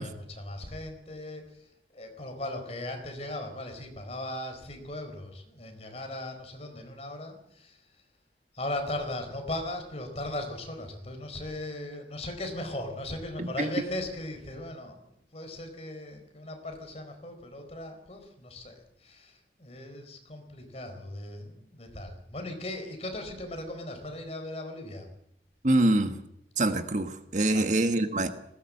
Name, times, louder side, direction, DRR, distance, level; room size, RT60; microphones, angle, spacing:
voice 1, 0.0-7.8 8.5-18.7 19.0-25.1 27.4-27.7, left 1 dB, 35° left, 5 dB, 4.4 m, -38 dB
voice 2, 13.4-13.7 25.6-26.2 26.6-28.3, right 2 dB, 45° right, 8 dB, 1.5 m, -25 dB
20.0 x 18.0 x 7.7 m, 0.77 s
head